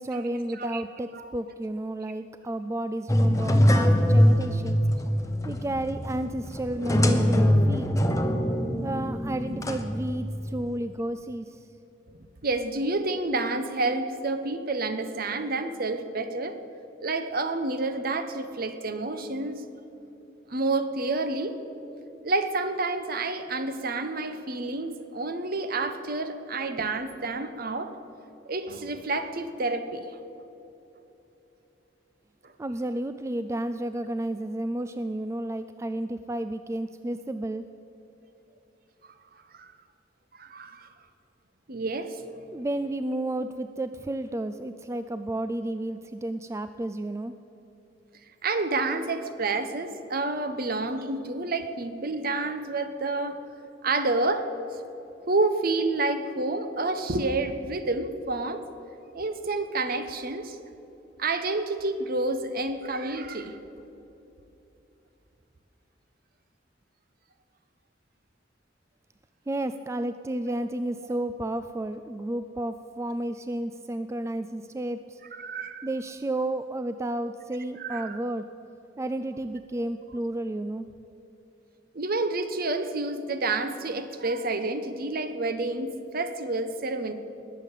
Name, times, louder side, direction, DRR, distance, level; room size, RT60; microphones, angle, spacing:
voice 1, 0.0-4.8 5.4-7.9 8.8-11.7 32.6-37.6 42.5-47.3 69.5-75.2 75.8-78.5 79.0-80.9, right 1 dB, 15° right, 10 dB, 0.3 m, -32 dB
sound 1, 3.1-10.7, equal, 20° left, 1.0 m, -23 dB
voice 2, 12.4-16.6 17.0-19.6 20.5-21.6 22.2-28.0 28.5-30.2 32.4-32.5 39.5-39.7 40.4-40.9 41.7-42.2 48.4-53.4 53.8-54.5 55.3-58.6 59.1-60.6 61.2-63.6 70.5-70.6 75.3-75.9 77.8-78.2 81.9-87.1, right 2 dB, 55° right, 9 dB, 1.0 m, -29 dB
19.5 x 7.4 x 8.2 m, 2.9 s
head